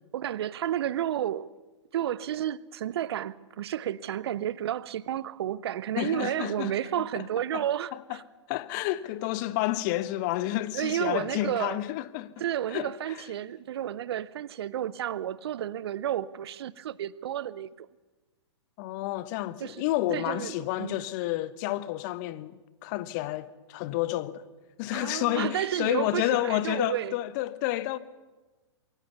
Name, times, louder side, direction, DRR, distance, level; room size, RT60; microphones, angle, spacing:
voice 1, 0.1-1.5 1.9-8.2 10.7-11.8 12.4-17.9 19.6-19.8 20.1-21.0 24.9-27.1, right 11 dB, 60° right, 0.7 m, -31 dB
voice 2, 6.0-6.7 7.5-7.6 7.9-8.0 8.5-12.3 12.7-13.2 18.8-24.4 24.8-28.0, left 16 dB, 40° left, 0.9 m, -30 dB
22.5 x 17.5 x 7.0 m
figure-of-eight pair, 115°, 15 cm